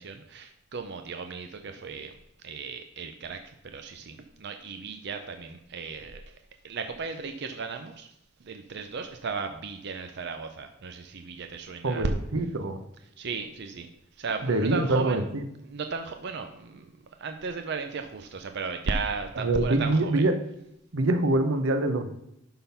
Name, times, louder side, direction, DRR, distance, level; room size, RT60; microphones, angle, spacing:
voice 1, 0.0-2.2 2.4-6.3 6.6-8.1 8.4-12.1 13.2-15.2 15.6-16.9 17.2-20.2, right 4 dB, 60° right, 7 dB, 0.6 m, -35 dB
voice 2, 11.8-12.8 14.4-15.4 19.4-20.3 20.9-22.1, right 2 dB, 85° right, 8 dB, 0.9 m, -25 dB
11.0 x 3.9 x 5.6 m, 0.81 s
head